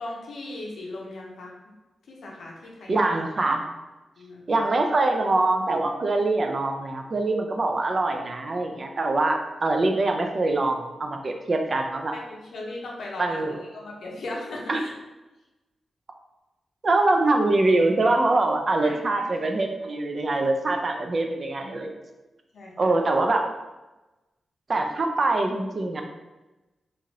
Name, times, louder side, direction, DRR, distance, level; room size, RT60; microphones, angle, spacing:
voice 1, 0.0-1.7 2.1-3.0 4.2-4.6 12.1-14.9 18.8-19.5 20.3-20.5 22.5-22.9, left 2 dB, 80° left, -2 dB, 0.7 m, -38 dB
voice 2, 2.9-3.6 4.5-12.1 13.2-13.6 14.7-14.8 16.8-21.9 22.8-23.5 24.7-26.0, right 2 dB, 45° right, 4 dB, 0.4 m, -24 dB
3.1 x 2.5 x 2.8 m, 1.1 s
cardioid pair, 85°, 0 cm